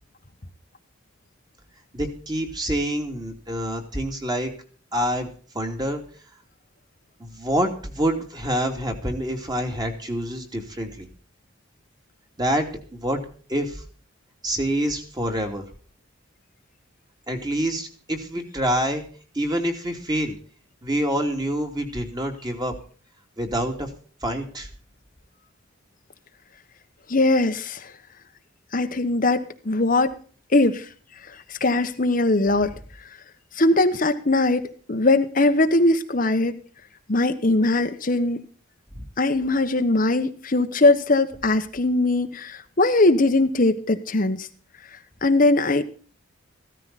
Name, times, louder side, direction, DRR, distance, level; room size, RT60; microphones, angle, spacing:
voice 1, 1.9-4.5 4.9-5.3 5.5-6.0 7.2-11.1 12.4-13.2 13.5-13.8 14.4-15.7 17.3-19.0 19.3-20.4 20.8-22.7 23.4-23.9 24.2-24.7 38.9-39.0, right 1 dB, 20° right, 3 dB, 2.8 m, -26 dB
voice 2, 27.1-27.9 28.7-30.1 30.5-30.9 31.5-32.7 33.5-34.6 34.9-36.6 37.1-38.4 39.2-44.5 45.2-45.8, left 2 dB, 45° left, 7 dB, 1.1 m, -20 dB
16.0 x 13.5 x 4.2 m, 0.42 s
head